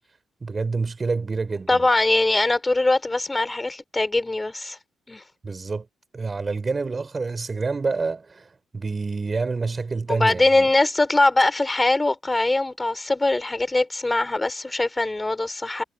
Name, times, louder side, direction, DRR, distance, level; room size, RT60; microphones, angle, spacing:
voice 1, 0.4-1.9 5.4-5.9 6.1-10.7, right 4 dB, 30° right, 3.8 m, -27 dB
voice 2, 1.7-4.8 5.1-5.2 10.1-15.8, left 2 dB, 15° left, 4.2 m, -22 dB
cardioid pair, 90°, 0 cm